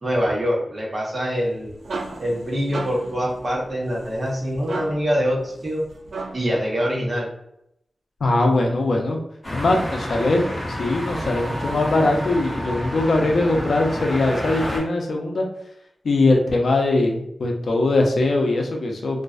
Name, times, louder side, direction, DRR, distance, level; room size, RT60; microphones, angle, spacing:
voice 1, 0.0-1.7 2.2-5.8 6.3-7.3, equal, 35° right, -3 dB, 0.8 m, -24 dB
sound 1, 1.4-6.6, right 3 dB, 80° right, 0.3 m, -36 dB
voice 2, 8.2-9.2 9.5-10.5 10.8-15.5 16.0-19.2, left 2 dB, 80° left, 1 dB, 0.4 m, -21 dB
sound 2, 9.4-14.8, left 1 dB, 25° left, 0.8 m, -29 dB
2.4 x 2.1 x 2.4 m, 0.76 s
wide cardioid pair, 135°, 0 cm